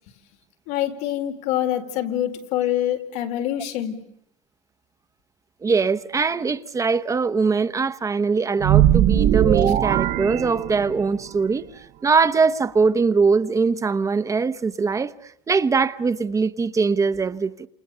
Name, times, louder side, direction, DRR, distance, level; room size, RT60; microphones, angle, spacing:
voice 1, 0.7-4.0, left 12 dB, 85° left, 4.2 m, -25 dB
voice 2, 5.6-17.7, right 4 dB, 20° right, 1.0 m, -22 dB
sound 1, 8.6-11.2, right 12 dB, 55° right, 1.2 m, -19 dB
29.5 x 28.0 x 6.8 m
cardioid pair, 130°, 15 cm